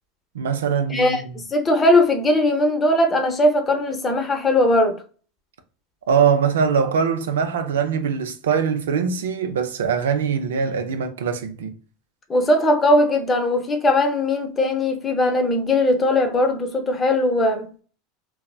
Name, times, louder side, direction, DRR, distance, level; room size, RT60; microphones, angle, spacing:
voice 1, 0.3-1.4 6.1-11.7, right 6 dB, 90° right, 0.4 m, -22 dB
voice 2, 0.9-5.0 12.3-17.7, left 1 dB, 25° left, 0.7 m, -19 dB
3.2 x 2.0 x 2.3 m
hypercardioid pair, 95°, 0 cm